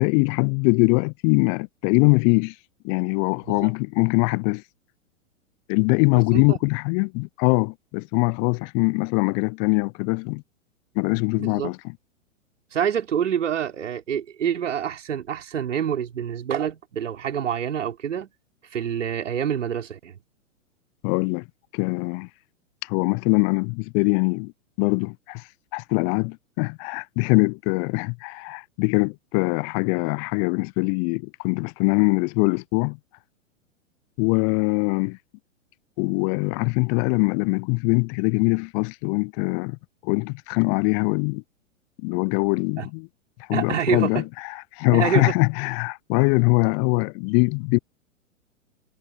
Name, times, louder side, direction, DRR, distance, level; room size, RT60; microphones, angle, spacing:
voice 1, 0.0-2.5 2.8-4.6 5.7-10.4 11.0-11.9 21.0-21.4 21.7-22.3 22.8-24.5 24.8-25.5 25.7-33.0 34.2-35.2 36.0-39.8 40.0-41.4 42.0-43.1 43.4-47.8, left 39 dB, 25° left, 0.5 m, -22 dB
voice 2, 11.4-11.7 12.7-18.3 18.7-20.2 42.8-42.9 43.5-44.2 44.9-45.3, right 8 dB, 65° right, 4.9 m, -27 dB
figure-of-eight pair, 105°, 39 cm